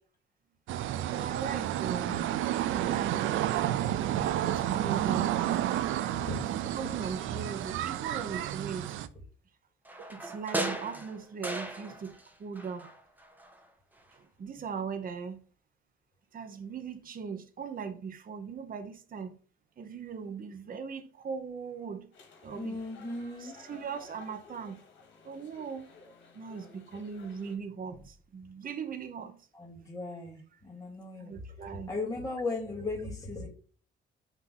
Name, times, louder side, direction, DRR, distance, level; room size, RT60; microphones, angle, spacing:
sound 1, 0.7-9.1, right 12 dB, 85° right, 0.5 m, -30 dB
voice 1, 1.0-2.2 2.7-3.2 4.0-5.4 6.4-9.0 10.0-12.1 12.4-12.9 14.1-15.4 16.3-19.3 19.8-22.1 22.4-22.8 23.2-24.8 25.2-25.9 26.3-29.5 31.2-31.9, right 6 dB, 45° right, 1.0 m, -39 dB
sound 2, 9.8-12.3 12.5-13.6 14.0-14.1, right 1 dB, 10° right, 1.2 m, -37 dB
sound 3, 22.1-27.6, left 4 dB, 70° left, 1.7 m, -55 dB
voice 2, 22.5-23.5 29.5-31.3 31.9-33.5, left 2 dB, 15° left, 2.5 m, -37 dB
6.0 x 2.9 x 5.6 m
cardioid pair, 90°, 20 cm